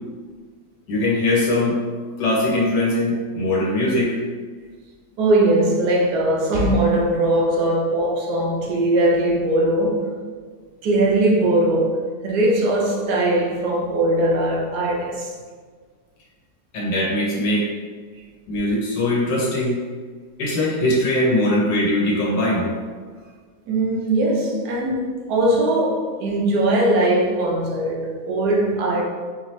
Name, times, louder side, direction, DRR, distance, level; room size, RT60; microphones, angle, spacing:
voice 1, 0.9-4.2 16.7-17.7 18.5-19.8 20.4-22.7, left 1 dB, 75° left, 1.3 m, -21 dB
voice 2, 5.2-10.1 10.8-15.3 23.7-29.0, right 1 dB, 70° right, 1.2 m, -20 dB
4.3 x 2.8 x 3.1 m
omnidirectional pair, 1.9 m